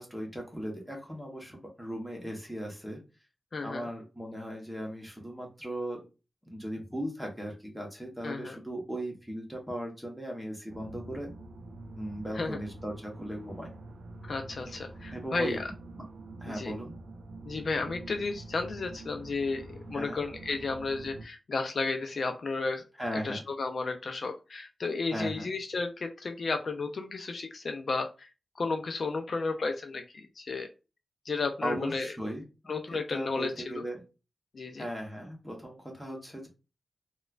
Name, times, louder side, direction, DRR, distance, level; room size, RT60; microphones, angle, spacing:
voice 1, 0.0-3.0 3.6-6.0 6.5-11.3 12.0-13.7 15.1-15.6 15.9-16.0 16.4-16.9 19.9-20.2 23.0-23.4 25.1-25.5 31.6-32.4 32.9-34.0 34.8-36.5, equal, ahead, 0 dB, 0.9 m, -37 dB
voice 2, 3.5-3.8 8.2-8.6 12.3-12.6 14.3-15.6 16.5-16.7 17.5-22.8 23.1-30.7 31.3-32.1 32.7-33.8 34.5-34.9, left 3 dB, 55° left, 5 dB, 0.3 m, -33 dB
sound 1, 10.7-21.2, right 2 dB, 85° right, 0.5 m, -46 dB
4.2 x 2.2 x 2.3 m, 0.30 s
wide cardioid pair, 135°, 0 cm